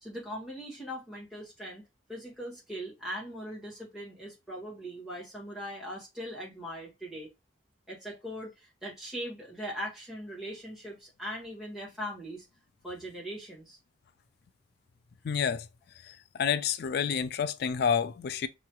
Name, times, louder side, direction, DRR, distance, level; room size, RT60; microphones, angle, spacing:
voice 1, 0.0-1.8 2.1-7.3 7.9-12.4 12.8-13.8, equal, 5° right, 1.7 m, -40 dB
voice 2, 15.2-15.7 16.0-16.1 16.4-18.5, left 7 dB, 50° left, 0.3 m, -29 dB
5.5 x 3.0 x 2.2 m
head